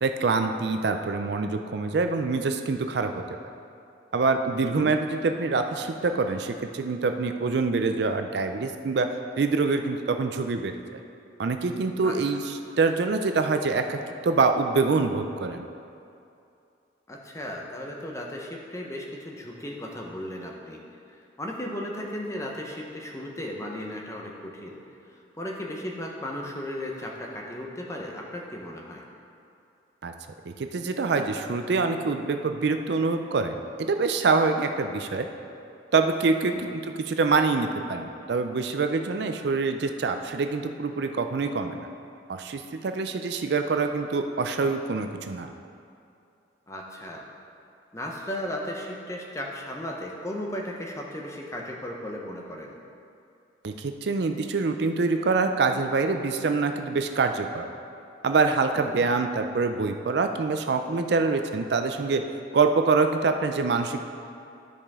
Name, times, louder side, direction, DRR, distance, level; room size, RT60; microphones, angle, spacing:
voice 1, 0.0-3.2 4.1-9.1 9.4-11.0 11.4-15.7 30.0-30.1 30.5-35.3 35.9-41.9 42.3-45.5 53.6-57.7 58.2-62.2 62.5-64.1, right 4 dB, 60° right, 6 dB, 0.4 m, -25 dB
voice 2, 4.6-4.9 12.0-12.2 17.1-20.8 21.1-24.8 25.1-29.0 36.5-36.7 46.7-47.2 47.9-52.8 58.9-59.0, left 1 dB, 15° left, -1 dB, 0.8 m, -36 dB
13.0 x 5.0 x 3.6 m, 2.6 s
head